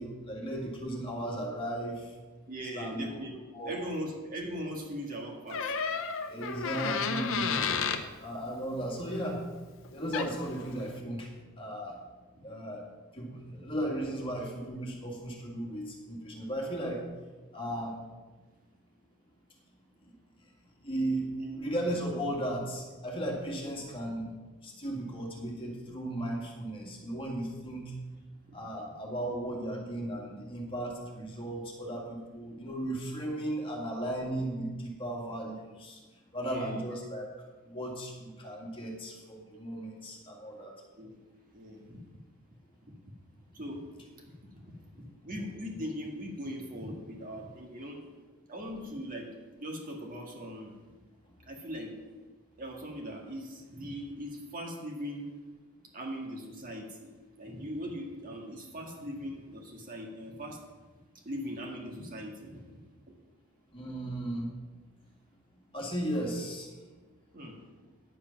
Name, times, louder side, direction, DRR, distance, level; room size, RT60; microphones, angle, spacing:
voice 1, 0.0-2.1 2.7-3.0 3.5-3.8 6.3-7.6 8.2-9.5 9.9-11.3 11.6-11.9 12.4-12.8 13.1-17.0 17.5-18.0 20.8-21.3 21.5-24.3 24.6-27.9 28.5-36.0 36.3-37.3 37.6-40.7 63.7-64.5 65.7-66.7, right 1 dB, 25° left, -1 dB, 2.0 m, -35 dB
voice 2, 2.5-3.3 3.7-5.7 13.5-13.6 21.4-21.6 28.5-28.6 36.4-36.8 41.0-41.2 41.5-42.0 42.8-42.9 43.5-43.8 44.2-44.7 45.0-48.0 48.5-49.3 49.6-50.7 51.5-51.9 52.6-55.3 55.9-57.1 57.4-60.6 61.3-62.6 63.1-63.2 67.3-67.6, equal, 40° right, 0 dB, 1.9 m, -40 dB
Door, 5.5-8.1 9.8-9.9 10.1-10.5, left 5 dB, 65° left, 0.8 m, -31 dB
9.8 x 8.5 x 5.9 m, 1.3 s
head